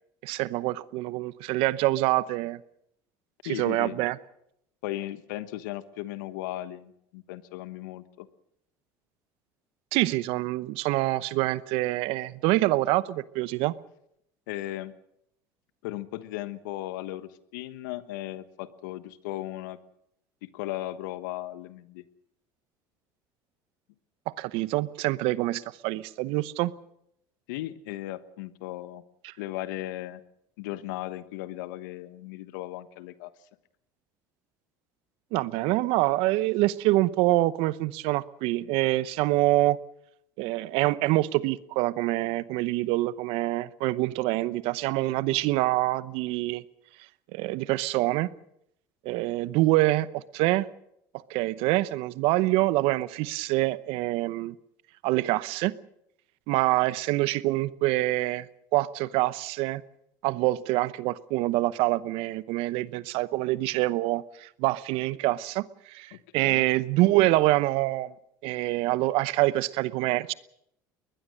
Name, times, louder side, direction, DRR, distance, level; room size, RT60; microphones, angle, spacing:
voice 1, 0.2-2.6 3.5-4.2 9.9-13.7 24.3-26.7 29.2-29.3 35.3-39.8 40.4-46.6 47.3-48.3 49.0-50.7 51.3-54.5 55.0-55.7 56.5-58.5 58.7-59.8 60.2-68.1 68.4-70.3, right 18 dB, 70° right, 17 dB, 0.9 m, -26 dB
voice 2, 3.4-4.0 4.8-8.3 14.5-14.9 15.8-19.8 20.4-22.0 27.5-29.0 29.4-30.2 30.6-33.3 66.1-66.7, left 15 dB, 80° left, 14 dB, 1.2 m, -36 dB
22.0 x 20.5 x 6.6 m, 0.76 s
hypercardioid pair, 80°, 10 cm